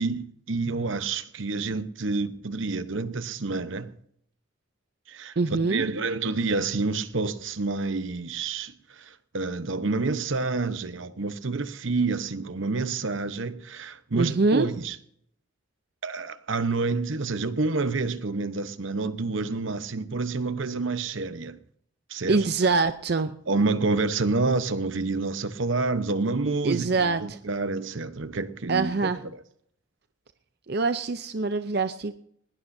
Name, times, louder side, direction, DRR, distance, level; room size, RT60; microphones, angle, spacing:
voice 1, 0.0-3.9 5.1-5.3 5.7-15.0 16.0-21.6 22.1-22.4 23.5-29.4, right 3 dB, 75° right, 1.0 m, -28 dB
voice 2, 5.4-5.8 14.1-14.7 22.3-23.4 26.6-27.4 28.7-29.2 30.7-32.1, right 3 dB, 55° right, 0.6 m, -24 dB
20.0 x 19.0 x 2.7 m
head